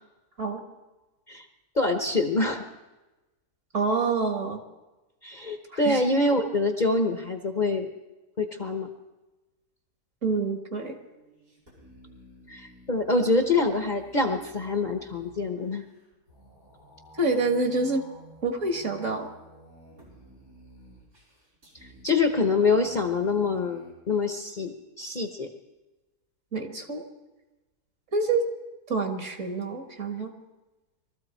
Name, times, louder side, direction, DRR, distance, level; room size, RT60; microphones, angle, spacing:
voice 1, 1.7-2.6 5.2-7.9 8.4-8.9 12.5-15.8 22.0-25.5, left 3 dB, 35° left, 4 dB, 1.0 m, -25 dB
voice 2, 3.7-4.6 5.7-6.0 10.2-11.0 17.2-18.0 18.4-19.3 26.5-27.0 28.1-28.5 28.9-30.3, right 3 dB, 50° right, 4 dB, 2.1 m, -27 dB
sound 1, 10.7-23.9, right 1 dB, 90° right, 5.9 m, -53 dB
22.0 x 14.0 x 4.4 m, 1.1 s
omnidirectional pair, 1.7 m